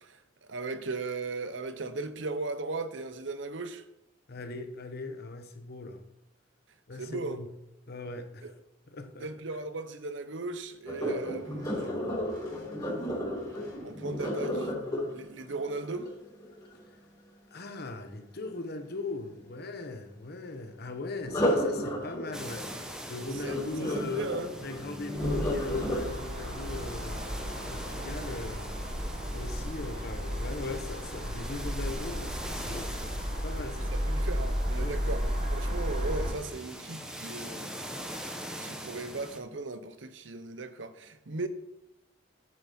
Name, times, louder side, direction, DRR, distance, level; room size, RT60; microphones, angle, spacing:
voice 1, 0.0-3.8 7.0-7.4 8.4-8.5 9.2-11.9 13.8-14.7 15.1-16.1 23.4-24.5 33.7-37.7 38.6-41.5, right 3 dB, 70° right, 0.8 m, -37 dB
voice 2, 4.3-6.0 6.9-7.5 7.9-8.5 8.9-9.3 17.5-22.7 23.1-24.3 24.6-28.7 29.3-33.9 34.7-35.0, left 3 dB, 55° left, 1.0 m, -39 dB
Sink (filling or washing), 10.9-16.8 21.2-28.2 28.7-29.1 29.6-29.7, equal, 20° left, 3.4 m, -33 dB
sound 1, 22.3-39.4, equal, 5° right, 1.0 m, -43 dB
sound 2, 25.1-36.3, equal, 50° right, 3.5 m, -33 dB
8.8 x 7.2 x 4.3 m
head